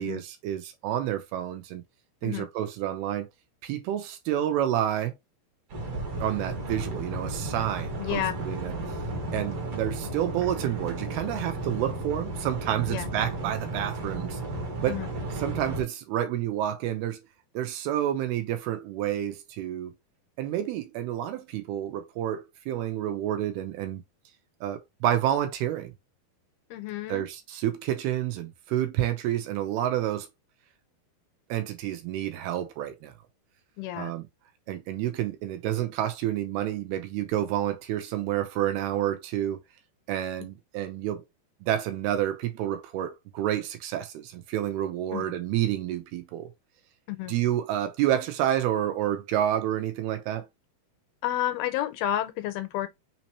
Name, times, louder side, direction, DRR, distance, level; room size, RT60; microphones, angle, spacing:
voice 1, 0.0-1.8 2.2-3.3 3.6-5.1 6.2-8.8 9.3-14.4 14.8-15.0 15.4-17.2 17.5-19.9 20.4-24.0 24.6-25.9 27.1-30.3 31.5-33.1 34.0-34.3 34.7-39.6 40.1-41.2 41.6-46.5 47.3-50.5, right 11 dB, 80° right, 2.7 m, -29 dB
sound 1, 5.7-15.8, right 2 dB, 55° right, 2.0 m, -34 dB
voice 2, 8.0-8.3 12.9-13.1 14.9-15.1 26.7-27.2 33.8-34.1 45.1-45.3 47.1-47.3 51.2-52.9, left 12 dB, 80° left, 2.4 m, -30 dB
6.1 x 2.9 x 2.9 m
omnidirectional pair, 4.6 m